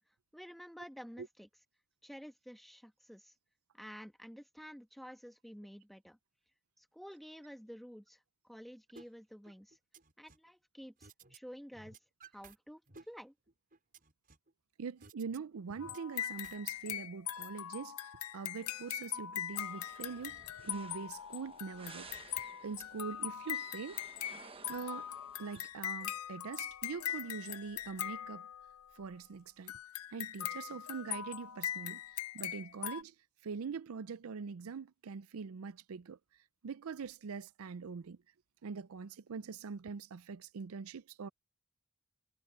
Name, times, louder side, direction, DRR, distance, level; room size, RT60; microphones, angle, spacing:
voice 1, 0.1-1.5 2.0-3.3 3.7-6.2 6.8-9.8 10.2-12.0 12.3-13.3, equal, ahead, 1.5 m, -51 dB
sound 1, 9.0-9.1 9.5-10.5 11.0-11.4 11.7-12.6 12.9-14.5 15.0-15.4 15.7-17.0, right 4 dB, 40° right, 5.9 m, -56 dB
voice 2, 14.8-24.0 24.7-25.1 25.4-28.5 28.9-29.7 30.1-33.1 33.4-36.2 36.6-38.2 38.6-41.3, right 5 dB, 75° right, 0.5 m, -43 dB
sound 2, 15.8-28.9 29.7-33.0, left 11 dB, 85° left, 0.5 m, -41 dB
sound 3, 19.5-25.7, right 4 dB, 25° right, 1.1 m, -56 dB
head